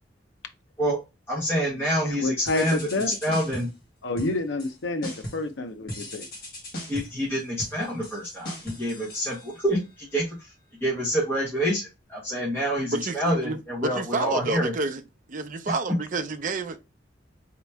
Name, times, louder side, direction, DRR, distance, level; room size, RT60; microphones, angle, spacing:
voice 1, 1.3-2.9 3.2-3.7 6.9-10.2 10.8-14.7, equal, 15° left, 1.4 m, -27 dB
voice 2, 2.1-3.2 4.0-6.2, left 2 dB, 85° left, 0.6 m, -28 dB
sound 1, 2.5-3.8 4.2-4.7 5.0-5.5 5.9-9.9, equal, 55° left, 1.9 m, -38 dB
voice 3, 12.9-15.0 15.3-16.8, right 3 dB, 45° right, 0.6 m, -29 dB
4.1 x 2.9 x 3.4 m
head